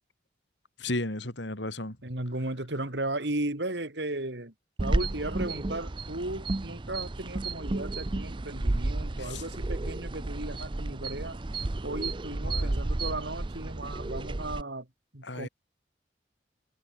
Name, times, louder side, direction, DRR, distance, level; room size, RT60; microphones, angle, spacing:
voice 1, 0.8-2.0 9.2-9.4 12.4-12.7 15.2-15.5, left 2 dB, 80° left, 4.8 m, -34 dB
voice 2, 2.0-4.5 4.8-11.4 11.8-14.9 15.1-15.5, right 2 dB, 70° right, 3.0 m, -35 dB
sound 1, 4.8-14.6, right 2 dB, 25° right, 0.6 m, -32 dB
head